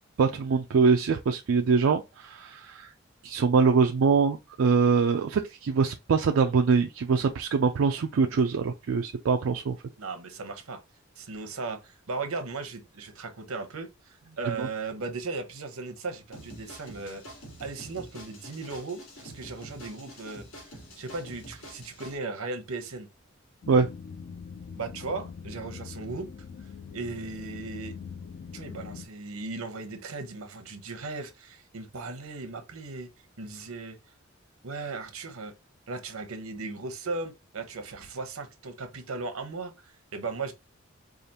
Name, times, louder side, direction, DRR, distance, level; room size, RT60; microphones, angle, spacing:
voice 1, 0.2-2.9 3.2-9.8 14.6-14.7 23.7-23.9, right 5 dB, 70° right, 0.4 m, -23 dB
voice 2, 10.0-10.8 11.2-17.2 17.6-20.4 21.0-23.1 24.8-26.3 26.9-27.9 28.5-33.1 33.4-34.0 34.6-35.5 35.9-40.5, right 3 dB, 90° right, 0.9 m, -37 dB
sound 1, 16.3-22.2, equal, 80° left, 2.2 m, -46 dB
sound 2, 23.6-29.1, left 6 dB, 50° left, 0.3 m, -42 dB
4.9 x 2.4 x 2.8 m
head